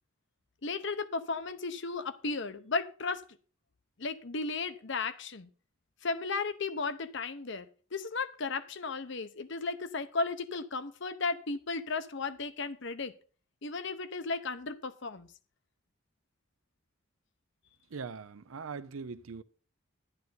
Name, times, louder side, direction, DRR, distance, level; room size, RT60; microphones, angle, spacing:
voice 1, 0.6-3.2 4.0-5.5 6.0-13.1 13.6-15.3, left 4 dB, 60° left, 0.9 m, -35 dB
voice 2, 17.9-19.4, right 5 dB, 85° right, 0.6 m, -41 dB
11.0 x 11.0 x 4.1 m
head